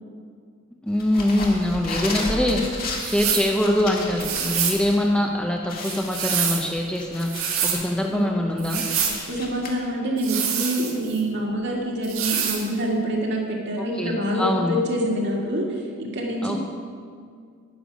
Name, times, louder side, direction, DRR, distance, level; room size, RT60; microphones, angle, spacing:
voice 1, 0.8-8.8 13.8-14.7 16.4-16.6, left 1 dB, 5° left, 0 dB, 0.8 m, -24 dB
sound 1, 1.0-5.0 5.3-5.4 5.7-7.9 8.3-9.7, left 2 dB, 45° left, 1.9 m, -34 dB
sound 2, 2.9-3.5 4.2-4.8 5.8-6.7 7.2-7.8 8.6-9.2 10.2-11.2 12.0-12.6, right 7 dB, 75° right, 1.9 m, -26 dB
voice 2, 9.3-15.7 16.0-16.6, right 1 dB, 55° right, -2 dB, 2.3 m, -26 dB
10.5 x 9.7 x 6.3 m, 2.1 s
head